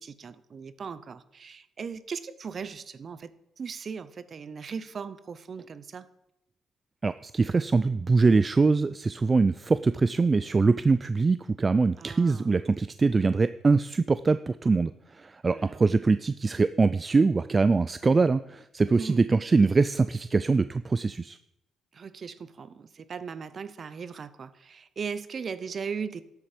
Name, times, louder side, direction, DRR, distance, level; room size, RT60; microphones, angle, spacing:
voice 1, 0.0-3.3 3.6-6.1 12.0-12.6 15.4-15.9 19.0-19.2 21.9-26.2, right 6 dB, 45° right, 15 dB, 0.8 m, -38 dB
voice 2, 7.0-21.4, right 4 dB, 30° right, 13 dB, 0.3 m, -23 dB
12.0 x 8.3 x 5.1 m, 0.85 s
cardioid pair, 90°, 0 cm